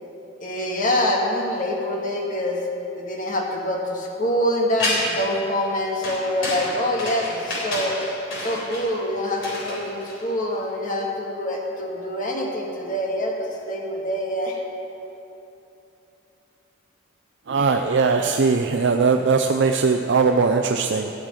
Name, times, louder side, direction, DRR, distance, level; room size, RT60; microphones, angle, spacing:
voice 1, 0.4-2.6 3.0-8.0 8.4-14.6, left 1 dB, 40° left, 0 dB, 1.9 m, -25 dB
sound 1, 4.8-5.3 6.0-10.5, left 2 dB, 70° left, 3.7 m, -29 dB
voice 2, 17.5-21.1, right 4 dB, 60° right, 4 dB, 0.5 m, -20 dB
14.5 x 6.4 x 9.0 m, 2.9 s
head